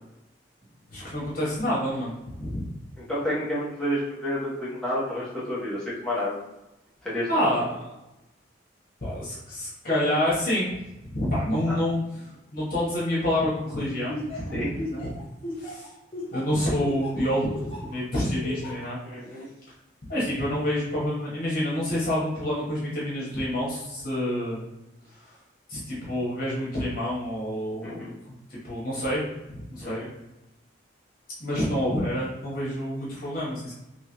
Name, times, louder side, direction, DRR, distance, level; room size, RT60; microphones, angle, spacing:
voice 1, 0.9-2.6 7.3-7.7 9.0-10.8 11.1-12.0 12.5-14.2 14.5-15.1 15.6-15.8 16.3-19.0 20.1-24.6 25.7-28.0 28.6-30.0 31.4-33.7, left 1 dB, 50° left, -7 dB, 1.2 m, -27 dB
voice 2, 3.1-6.4 7.0-7.5 11.7-11.8 14.5-14.7 19.0-19.5 27.8-28.1 29.8-30.1, equal, 5° left, -9 dB, 1.0 m, -30 dB
Laughter, 14.1-18.0 18.4-18.9, left 2 dB, 30° left, 0.7 m, -36 dB
3.2 x 2.9 x 2.9 m, 0.96 s
head